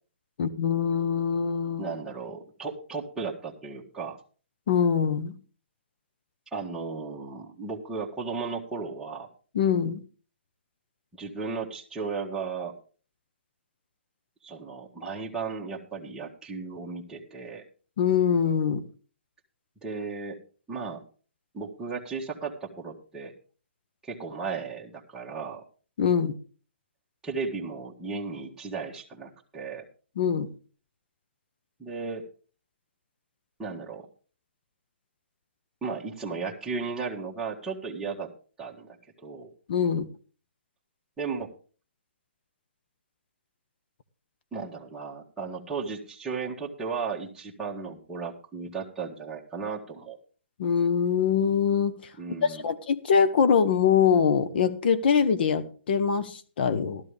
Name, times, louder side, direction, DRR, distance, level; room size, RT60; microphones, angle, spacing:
voice 1, 0.4-1.9 4.7-5.3 9.5-10.0 18.0-18.8 26.0-26.3 30.2-30.5 39.7-40.1 50.6-51.9 52.4-57.0, left 7 dB, 55° left, 10 dB, 1.1 m, -23 dB
voice 2, 1.8-4.2 6.5-9.3 11.1-12.7 14.4-17.6 19.8-20.4 20.7-21.0 21.5-23.3 24.0-25.6 27.2-29.8 31.8-32.2 33.6-34.1 35.8-38.3 38.6-39.0 39.2-39.5 41.2-41.5 44.5-50.2 52.2-52.7, right 5 dB, 10° right, -4 dB, 1.6 m, -35 dB
13.5 x 12.5 x 3.4 m, 0.38 s
hypercardioid pair, 145°, 6 cm